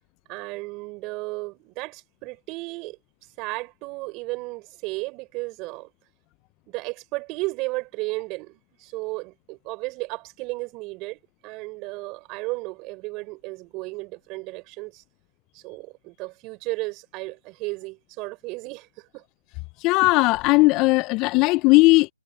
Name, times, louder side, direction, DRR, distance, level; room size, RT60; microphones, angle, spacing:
voice 1, 0.3-3.0 3.4-5.9 6.7-15.0 15.5-19.2, right 24 dB, 20° right, 5.7 m, -34 dB
voice 2, 19.8-22.1, left 23 dB, 20° left, 0.4 m, -17 dB
hypercardioid pair, 150°, 0 cm